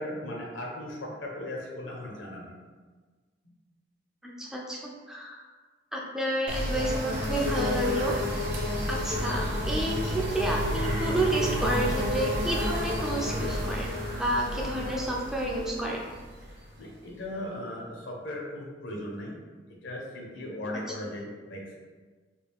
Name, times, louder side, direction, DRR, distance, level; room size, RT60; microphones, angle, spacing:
voice 1, 0.0-2.5 16.8-19.4 19.8-21.8, left 1 dB, 85° left, -1 dB, 0.8 m, -37 dB
voice 2, 4.2-5.4 5.9-8.1 8.9-16.1, right 1 dB, 5° right, -2 dB, 0.3 m, -30 dB
sound 1, 6.5-17.1, left 1 dB, 50° right, 0.7 m, -30 dB
3.4 x 2.4 x 3.3 m, 1.4 s
head